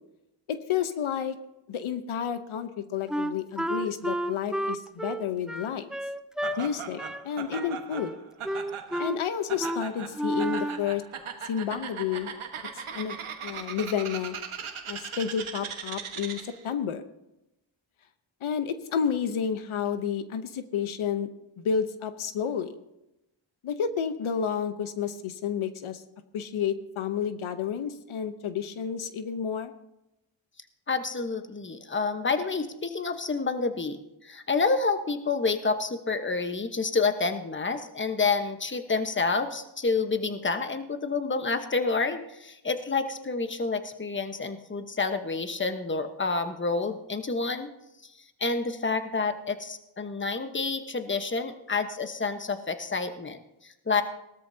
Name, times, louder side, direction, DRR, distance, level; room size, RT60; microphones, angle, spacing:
voice 1, 0.5-1.4 1.7-5.9 6.6-8.1 9.0-11.0 11.4-12.3 12.9-13.2 13.4-14.4 14.9-17.1 18.4-21.3 21.6-22.7 23.6-26.0 26.3-29.7, left 7 dB, 85° left, 10 dB, 0.9 m, -30 dB
Wind instrument woodwind instrument, 3.1-6.6 7.0-7.2 7.5-8.2 8.4-9.2 9.6-9.8 10.1-10.9, right 1 dB, ahead, 0.5 m, -31 dB
Laughter, 6.4-16.7, right 7 dB, 85° right, 1.4 m, -39 dB
voice 2, 30.9-47.7 48.4-54.0, left 4 dB, 25° left, 8 dB, 1.1 m, -29 dB
18.5 x 13.0 x 2.8 m, 0.89 s
cardioid pair, 70°, 48 cm